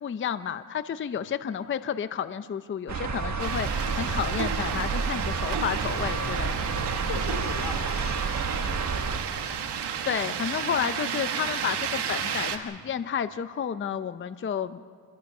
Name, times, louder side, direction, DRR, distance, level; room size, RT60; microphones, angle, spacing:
voice 1, 0.0-6.5 10.1-14.8, left 8 dB, 30° left, 11 dB, 0.6 m, -31 dB
sound 1, 2.9-9.2, right 4 dB, 40° right, 1.5 m, -30 dB
sound 2, 3.4-12.6, right 7 dB, 70° right, 1.7 m, -32 dB
voice 2, 6.0-6.4 6.7-9.6, left 6 dB, 85° left, 4 dB, 3.7 m, -41 dB
26.0 x 21.0 x 5.5 m, 2.2 s
cardioid pair, 120°, 42 cm